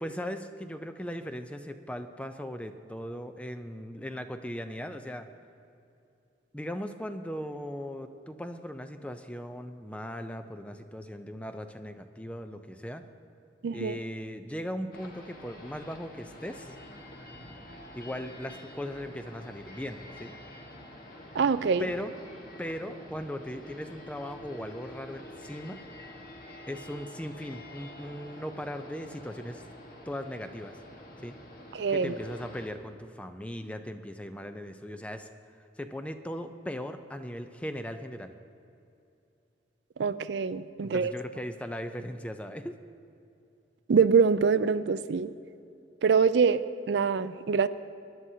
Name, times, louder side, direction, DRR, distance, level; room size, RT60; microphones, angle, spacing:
voice 1, 0.0-5.3 6.5-13.0 13.7-16.8 17.9-20.3 21.8-22.1 22.6-25.8 26.7-29.6 30.1-30.8 31.2-31.4 31.9-35.3 35.8-38.3 40.8-42.7, equal, 5° left, 8 dB, 0.5 m, -38 dB
voice 2, 13.6-14.0 21.3-21.9 31.7-32.1 40.0-41.1 43.9-45.3 46.0-46.6 46.9-47.7, right 5 dB, 70° right, 13 dB, 0.4 m, -24 dB
sound 1, 14.9-32.7, left 1 dB, 50° left, 1.4 m, -47 dB
20.5 x 11.0 x 2.8 m, 2.7 s
head